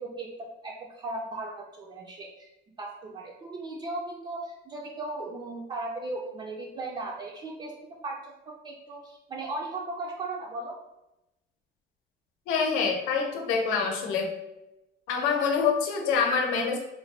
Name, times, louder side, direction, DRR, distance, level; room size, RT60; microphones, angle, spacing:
voice 1, 0.0-2.5 2.8-7.7 8.0-10.8, right 2 dB, 25° right, -2 dB, 0.4 m, -37 dB
voice 2, 12.5-14.3 15.1-16.8, left 5 dB, 75° left, 2 dB, 0.7 m, -26 dB
3.8 x 2.1 x 3.2 m, 0.92 s
cardioid pair, 140°, 20 cm